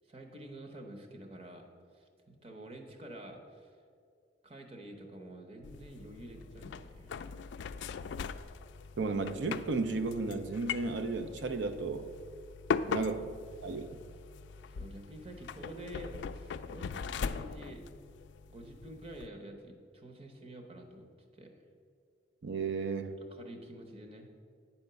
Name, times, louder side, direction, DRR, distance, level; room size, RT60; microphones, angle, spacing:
voice 1, 0.1-1.7 1.9-3.7 4.4-7.2 12.8-13.1 14.7-17.9 18.5-21.1 21.3-21.5 23.2-24.3, right 1 dB, 30° right, 3 dB, 0.9 m, -48 dB
sound 1, 5.6-19.3, left 6 dB, 80° left, 0.3 m, -40 dB
voice 2, 9.0-12.1 12.9-13.2 13.6-14.0 22.4-23.2, right 3 dB, 90° right, 8 dB, 0.6 m, -34 dB
9.1 x 4.3 x 6.8 m, 2.2 s
head